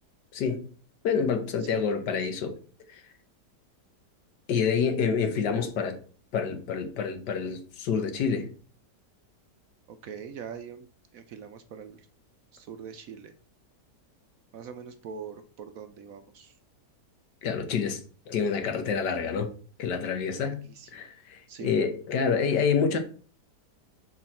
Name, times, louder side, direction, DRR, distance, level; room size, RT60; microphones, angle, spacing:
voice 1, 0.3-0.6 1.0-2.6 2.9-3.0 4.5-6.0 6.3-8.5 17.4-18.0 18.3-19.5 19.8-20.6 20.9-23.0, left 6 dB, 80° left, 1.6 m, -27 dB
voice 2, 9.9-10.9 11.1-12.1 12.5-13.3 14.5-16.5 20.3-21.1 21.5-21.8, right 7 dB, 70° right, 0.9 m, -43 dB
6.1 x 4.7 x 4.3 m
omnidirectional pair, 1.8 m